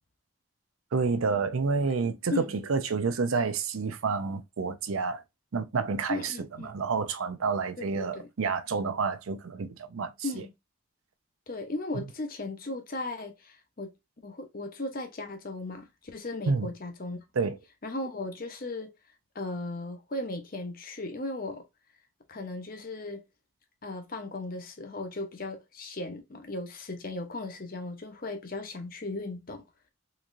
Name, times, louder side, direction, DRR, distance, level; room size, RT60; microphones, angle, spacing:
voice 1, 0.9-5.2 5.5-6.3 6.6-10.1 11.9-12.0 16.5-16.7 17.4-17.6, right 4 dB, 80° right, 0.5 m, -29 dB
voice 2, 6.1-6.7 7.8-8.3 10.2-10.5 11.5-13.9 14.2-17.2 17.8-18.9 19.3-21.7 22.3-23.3 23.8-29.6, left 2 dB, 45° left, 0.8 m, -36 dB
3.9 x 3.0 x 2.5 m
head